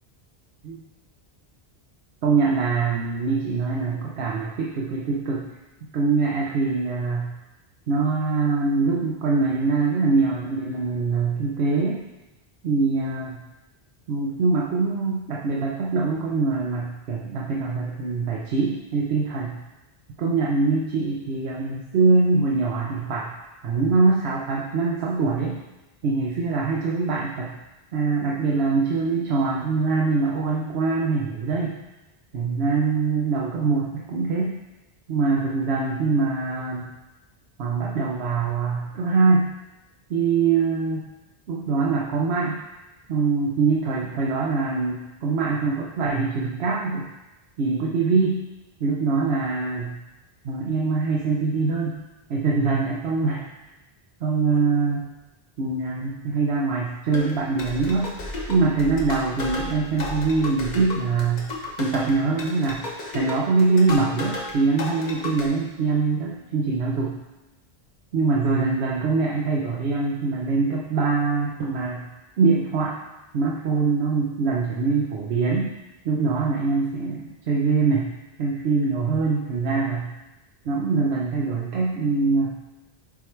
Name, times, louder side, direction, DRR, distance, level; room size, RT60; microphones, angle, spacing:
voice 1, 2.2-5.5 5.9-7.3 7.9-12.0 12.6-13.4 14.1-19.6 20.2-23.3 23.6-25.6 26.0-27.5 27.9-31.8 32.3-34.6 35.1-36.9 37.6-39.5 40.1-41.1 41.5-42.6 43.1-47.1 47.6-48.4 48.8-50.0 50.4-52.0 52.3-53.5 54.2-55.1 55.6-58.1 58.5-61.5 61.8-62.8 63.1-67.2 68.1-72.1 72.4-73.0 73.3-75.7 76.0-78.1 78.4-80.1 80.6-82.6, right 4 dB, 85° right, -3 dB, 1.0 m, -23 dB
sound 1, 57.1-64.5 64.8-65.5, left 2 dB, 45° left, 1.0 m, -33 dB
7.3 x 3.2 x 4.5 m, 1.0 s
omnidirectional pair, 1.0 m